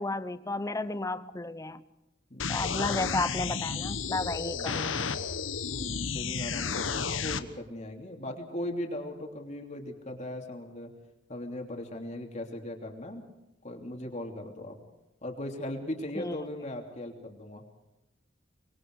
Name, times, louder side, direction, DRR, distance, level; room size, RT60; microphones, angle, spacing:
voice 1, 0.0-1.8 2.5-5.1 16.2-16.4, left 2 dB, 15° left, 14 dB, 0.7 m, -33 dB
voice 2, 2.3-3.2 4.5-4.7 5.7-10.9 11.3-13.3 13.6-14.8 15.2-17.6, left 1 dB, 35° left, 2 dB, 3.2 m, -38 dB
sound 1, 2.4-7.4, left 5 dB, 80° left, 1.2 m, -32 dB
25.0 x 22.0 x 4.8 m, 0.96 s
head